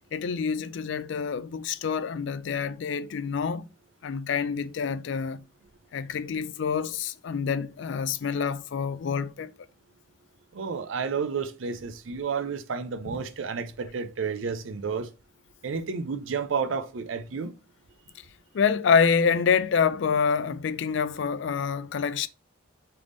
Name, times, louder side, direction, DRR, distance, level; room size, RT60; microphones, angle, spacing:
voice 1, 0.1-3.7 4.0-5.4 5.9-9.5 13.1-13.2 18.5-22.3, left 6 dB, 65° left, 0.4 m, -27 dB
voice 2, 10.5-15.1 15.6-17.5, right 5 dB, 75° right, 0.5 m, -31 dB
3.4 x 3.3 x 3.8 m
head